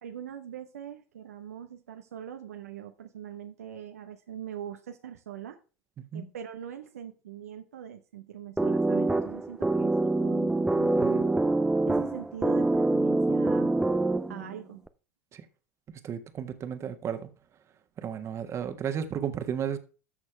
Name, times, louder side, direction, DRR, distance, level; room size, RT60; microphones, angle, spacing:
voice 1, 0.0-5.6 6.1-11.3 11.9-13.8 14.3-14.9, right 9 dB, 75° right, 0.9 m, -42 dB
sound 1, 8.6-14.5, right 2 dB, 5° right, 0.7 m, -25 dB
voice 2, 16.0-17.3 18.0-19.8, right 8 dB, 35° right, 1.5 m, -33 dB
14.0 x 6.2 x 3.4 m
figure-of-eight pair, 80°, 8 cm